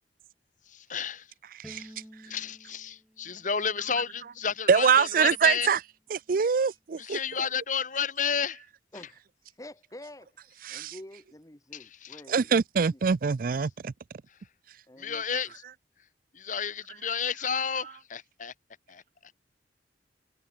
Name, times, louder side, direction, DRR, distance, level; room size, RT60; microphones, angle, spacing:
voice 1, 0.6-1.3 1.7-1.9 2.2-5.7 7.0-8.6 11.7-12.2 14.3-14.5 14.9-15.6 16.0-16.1 16.3-18.5 18.9-19.3, left 6 dB, 45° left, 1.3 m, -32 dB
Bowed string instrument, 1.6-4.9, equal, ahead, 1.4 m, -52 dB
voice 2, 4.7-5.8 6.1-7.2 10.6-10.9 12.3-13.9, right 6 dB, 50° right, 0.4 m, -24 dB
voice 3, 9.5-10.4 10.7-12.6 12.9-13.0 14.9-15.2, left 1 dB, 20° left, 1.3 m, -47 dB
head